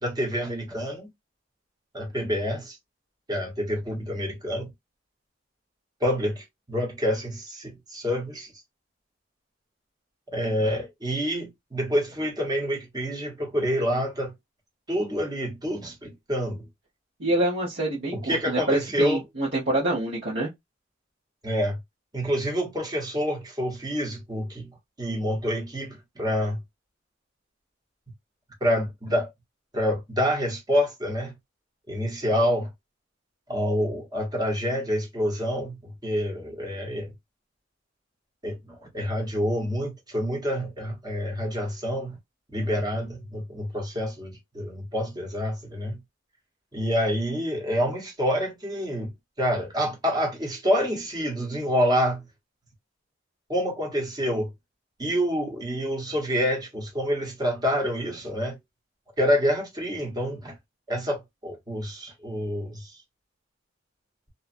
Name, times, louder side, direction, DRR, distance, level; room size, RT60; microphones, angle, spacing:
voice 1, 0.0-1.1 1.9-2.8 3.3-4.7 6.0-8.5 10.3-14.3 14.9-16.7 18.1-19.2 21.4-21.8 22.1-24.7 25.0-26.6 28.6-29.3 29.7-31.3 31.9-32.7 33.5-37.1 38.4-42.2 42.5-46.0 46.7-49.1 49.4-52.2 53.5-54.5 55.0-58.6 59.2-60.5 60.9-63.0, equal, 20° right, 1.1 m, -27 dB
voice 2, 17.2-20.5, right 1 dB, 65° right, 1.2 m, -26 dB
2.8 x 2.4 x 2.6 m
head